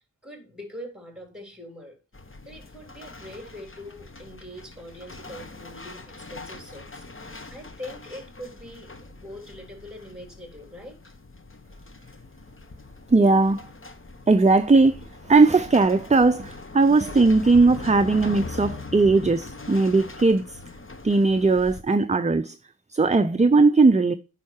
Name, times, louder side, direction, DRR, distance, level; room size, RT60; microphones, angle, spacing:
voice 1, 0.2-2.0 2.5-11.1, left 1 dB, ahead, 3.5 m, -42 dB
sound 1, 2.1-21.8, left 3 dB, 35° left, 1.1 m, -41 dB
voice 2, 13.1-13.7 14.3-15.0 15.3-20.6 21.0-22.6 22.9-24.1, right 3 dB, 20° right, 0.5 m, -18 dB
9.2 x 5.7 x 4.4 m
wide cardioid pair, 70°, 35 cm